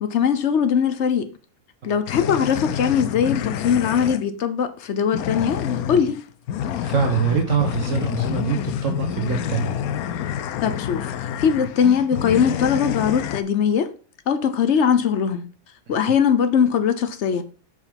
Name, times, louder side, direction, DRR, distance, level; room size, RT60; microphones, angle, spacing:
voice 1, 0.0-1.3 1.8-6.2 10.6-11.1 11.4-13.9 14.3-15.4 15.9-17.4, left 7 dB, 55° left, 1.1 m, -20 dB
sound 1, 2.1-4.2 5.1-13.4, left 10 dB, 90° left, 1.1 m, -28 dB
voice 2, 6.8-9.8 15.9-16.0, right 6 dB, 60° right, 1.3 m, -24 dB
6.6 x 5.0 x 5.2 m
omnidirectional pair, 1.5 m